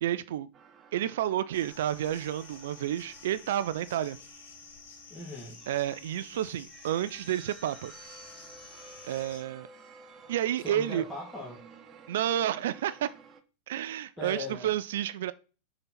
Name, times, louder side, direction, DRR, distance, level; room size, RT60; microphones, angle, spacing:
voice 1, 0.0-0.5 0.9-4.2 5.7-7.9 9.0-9.7 10.3-11.0 12.1-13.1 13.7-15.3, right 11 dB, 55° right, 0.4 m, -30 dB
sound 1, 0.5-13.4, right 5 dB, 25° right, 0.8 m, -54 dB
sound 2, 1.5-9.4, left 5 dB, 60° left, 1.6 m, -50 dB
voice 2, 5.1-5.6 10.6-11.6 14.2-14.7, left 2 dB, 10° left, 1.9 m, -39 dB
6.6 x 4.0 x 5.9 m
figure-of-eight pair, 90°, 0 cm